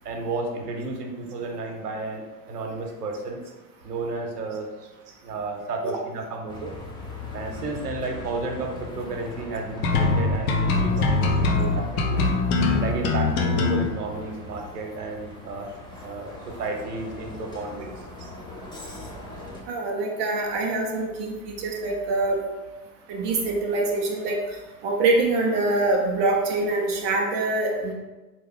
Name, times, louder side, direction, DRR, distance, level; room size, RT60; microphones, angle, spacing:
voice 1, 0.0-3.4 3.8-4.9 5.2-6.7 7.3-12.2 12.8-15.7 16.0-17.9, right 3 dB, 75° right, 2 dB, 0.8 m, -32 dB
Bus, 6.5-19.6, left 2 dB, 10° left, 0.6 m, -40 dB
sound 1, 9.8-13.8, left 3 dB, 60° left, 0.7 m, -22 dB
voice 2, 19.7-22.4 23.1-24.4 24.8-27.9, right 2 dB, 25° right, 0 dB, 0.3 m, -24 dB
3.7 x 2.8 x 3.4 m, 1.2 s
figure-of-eight pair, 85°, 48 cm